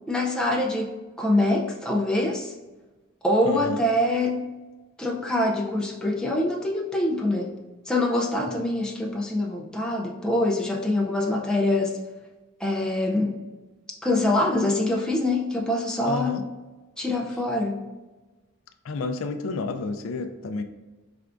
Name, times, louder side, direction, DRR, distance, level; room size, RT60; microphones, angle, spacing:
voice 1, 0.1-2.5 3.2-4.4 5.0-7.5 7.9-12.0 12.6-13.4 14.0-16.4 17.0-17.8, left 1 dB, 5° left, -2 dB, 0.4 m, -24 dB
voice 2, 3.4-3.8 16.1-16.4 18.8-20.6, left 3 dB, 70° left, 8 dB, 0.3 m, -30 dB
4.8 x 3.4 x 2.5 m, 1.2 s
head